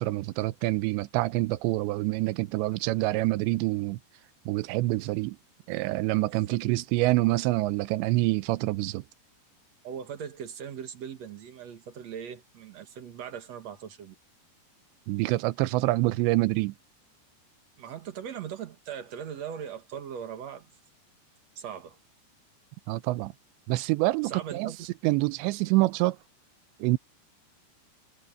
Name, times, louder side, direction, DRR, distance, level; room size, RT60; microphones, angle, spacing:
voice 1, 0.0-4.0 4.5-5.4 5.7-9.0 15.1-16.7 22.9-23.3 23.7-24.7 25.0-26.2 26.8-27.0, right 19 dB, 85° right, 2.9 m, -26 dB
voice 2, 6.5-6.8 9.8-14.1 17.8-20.7 21.6-22.0 24.2-24.8, right 8 dB, 55° right, 2.1 m, -39 dB
omnidirectional pair, 5.1 m